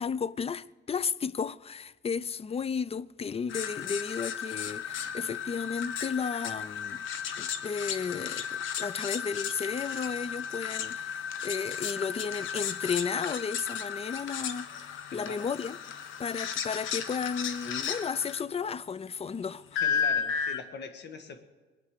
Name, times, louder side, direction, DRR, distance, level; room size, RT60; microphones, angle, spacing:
voice 1, 0.0-7.1 7.4-15.8 16.2-19.8, left 6 dB, 30° left, 0.4 m, -33 dB
sound 1, 3.5-18.4 19.8-20.6, left 7 dB, 80° left, 1.1 m, -34 dB
voice 2, 15.1-15.5 19.8-21.4, left 5 dB, 60° left, 1.7 m, -42 dB
21.0 x 9.2 x 6.6 m
cardioid pair, 90°, 20 cm